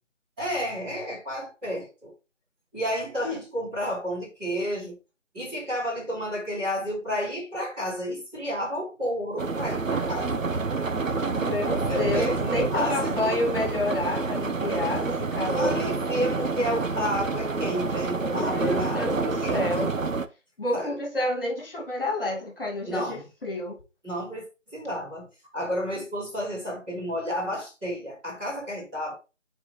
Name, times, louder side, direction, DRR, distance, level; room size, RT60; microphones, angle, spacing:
voice 1, 0.4-2.1 2.7-5.0 5.3-10.5 11.3-12.3 12.7-13.4 15.5-19.9 20.7-21.0 22.9-23.2 24.0-24.5 24.7-25.3 25.5-29.2, equal, 10° right, 3.0 m, -31 dB
sound 1, 9.4-20.3, right 4 dB, 80° right, 0.9 m, -28 dB
voice 2, 11.3-15.8 18.2-19.9 20.6-23.8, left 1 dB, 45° left, 2.2 m, -29 dB
8.5 x 4.6 x 3.2 m
figure-of-eight pair, 165°, 38 cm